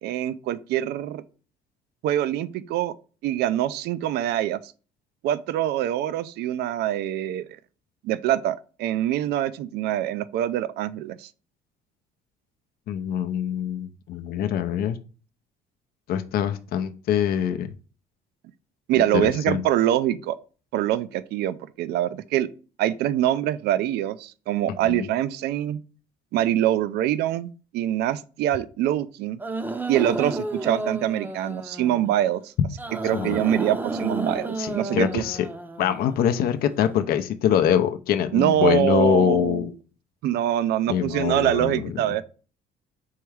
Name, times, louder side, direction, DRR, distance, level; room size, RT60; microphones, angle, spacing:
voice 1, 0.0-1.2 2.0-2.9 3.2-4.7 5.2-7.5 8.0-11.3 18.9-20.4 20.7-22.5 22.8-25.8 26.3-29.4 29.9-32.5 33.0-35.3 38.3-39.7 40.2-42.2, right 12 dB, 75° right, 0.4 m, -24 dB
voice 2, 12.9-15.0 16.1-17.7 19.1-19.6 24.8-25.1 33.1-33.4 34.6-35.4 35.8-39.7 40.9-41.9, left 9 dB, 65° left, 0.5 m, -24 dB
sound 1, 29.4-32.1 32.8-36.3, right 2 dB, 10° right, 0.5 m, -31 dB
4.6 x 3.5 x 3.2 m
cardioid pair, 110°, 17 cm